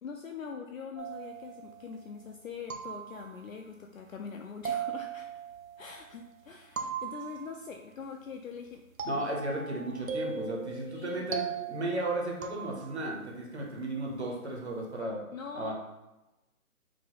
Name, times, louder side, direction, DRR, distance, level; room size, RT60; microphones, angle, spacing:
voice 1, 0.0-5.3 5.8-8.8 10.9-11.3 15.3-15.7, left 5 dB, 65° left, 3 dB, 0.5 m, -43 dB
sound 1, 1.0-2.1 2.7-3.7 4.7-6.2 6.8-7.9 9.0-13.3, right 6 dB, 70° right, 0.7 m, -39 dB
voice 2, 9.0-15.2 15.5-15.7, right 2 dB, 50° right, -1 dB, 1.0 m, -35 dB
4.6 x 2.0 x 4.0 m, 1.0 s
hypercardioid pair, 180°, 43 cm